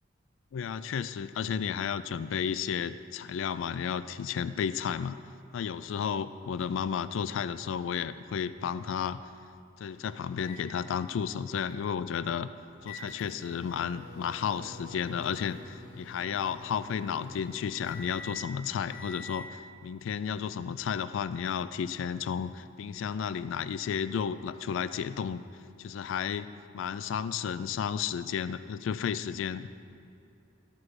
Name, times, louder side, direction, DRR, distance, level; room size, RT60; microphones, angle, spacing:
voice 1, 0.5-5.2 5.5-9.2 9.8-12.5 12.8-25.4 25.8-29.7, left 7 dB, 75° left, 14 dB, 0.3 m, -33 dB
sound 1, 10.4-19.5, left 2 dB, 90° left, 1.2 m, -48 dB
13.5 x 6.1 x 3.2 m, 2.5 s
head